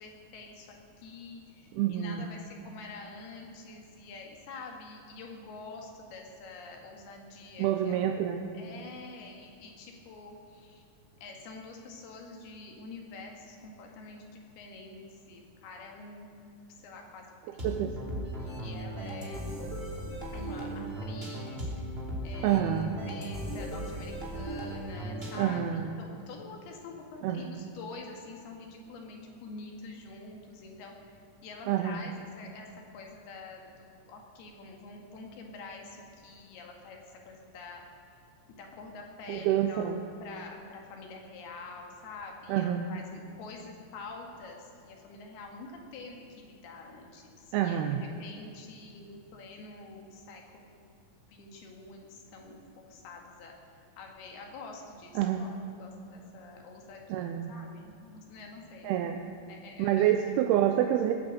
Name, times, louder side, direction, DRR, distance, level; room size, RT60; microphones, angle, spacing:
voice 1, 0.0-8.1 8.5-10.8 11.2-16.3 16.8-17.8 18.3-19.5 20.3-21.7 22.2-25.6 26.0-31.1 31.4-37.8 38.6-39.9 40.2-51.0 51.3-52.6 52.9-53.5 54.0-59.1 59.5-60.1, left 3 dB, 85° left, 1 dB, 3.9 m, -47 dB
voice 2, 1.7-2.3 7.6-8.4 17.6-17.9 22.4-22.9 25.4-25.9 27.2-27.5 31.7-32.0 39.3-40.0 42.5-42.9 47.5-48.0 55.2-55.5 57.1-57.6 58.8-59.2 59.8-61.1, right 11 dB, 90° right, 5 dB, 2.7 m, -27 dB
sound 1, 17.6-25.7, right 1 dB, 20° right, 2.4 m, -37 dB
20.5 x 8.9 x 7.8 m, 2.5 s
omnidirectional pair, 4.4 m